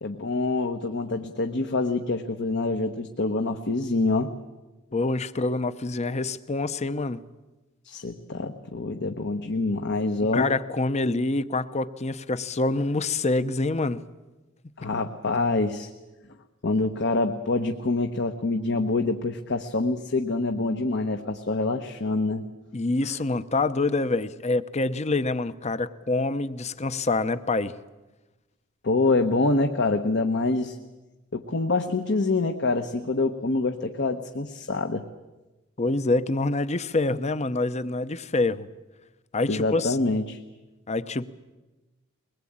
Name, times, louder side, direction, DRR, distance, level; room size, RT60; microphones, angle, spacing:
voice 1, 0.0-4.3 7.8-10.5 14.8-15.9 16.6-22.4 28.8-30.8 31.3-35.0 39.5-40.4, left 3 dB, 55° left, 5 dB, 1.1 m, -26 dB
voice 2, 4.9-7.2 10.3-14.0 22.7-27.7 35.8-38.7 39.3-40.0 40.9-41.2, left 2 dB, 30° left, 14 dB, 0.8 m, -26 dB
22.5 x 20.0 x 8.7 m, 1.1 s
head